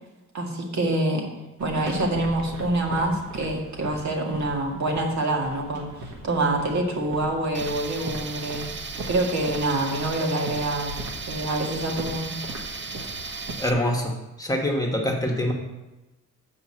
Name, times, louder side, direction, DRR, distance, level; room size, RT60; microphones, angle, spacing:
voice 1, 0.3-1.3 1.6-5.9 6.2-8.7 9.1-10.9 11.3-12.3, right 2 dB, 65° right, 1 dB, 2.0 m, -26 dB
sound 1, 1.6-13.5, right 1 dB, 90° right, 1.6 m, -39 dB
Tools, 7.5-13.7, right 5 dB, 40° right, 0.7 m, -36 dB
voice 2, 13.6-15.5, left 1 dB, 10° left, 0 dB, 1.2 m, -25 dB
8.0 x 5.3 x 7.6 m, 1.0 s
wide cardioid pair, 140°, 31 cm